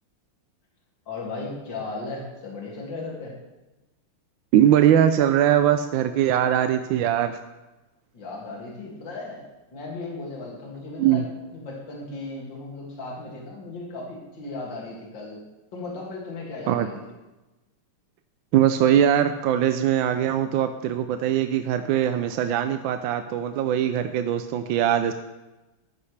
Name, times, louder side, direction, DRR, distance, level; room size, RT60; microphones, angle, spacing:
voice 1, 1.1-3.3 8.1-11.2 11.5-15.4 15.7-17.0, left 3 dB, 60° left, -3 dB, 3.1 m, -36 dB
voice 2, 4.5-7.4 11.0-11.2 16.7-16.9 18.5-25.1, right 10 dB, 75° right, 9 dB, 1.3 m, -21 dB
14.0 x 13.0 x 3.3 m, 1.1 s
omnidirectional pair, 2.3 m